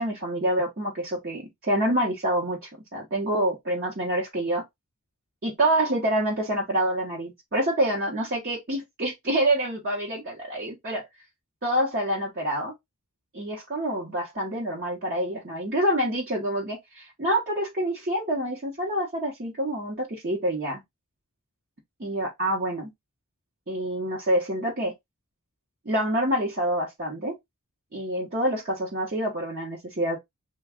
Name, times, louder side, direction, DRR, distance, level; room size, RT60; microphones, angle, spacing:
voice 1, 0.0-4.6 5.4-11.0 11.6-12.7 13.3-20.8 22.0-22.9 23.7-24.9 25.8-27.3 27.9-30.2, right 1 dB, 45° right, 1.0 m, -27 dB
3.4 x 2.3 x 3.5 m
head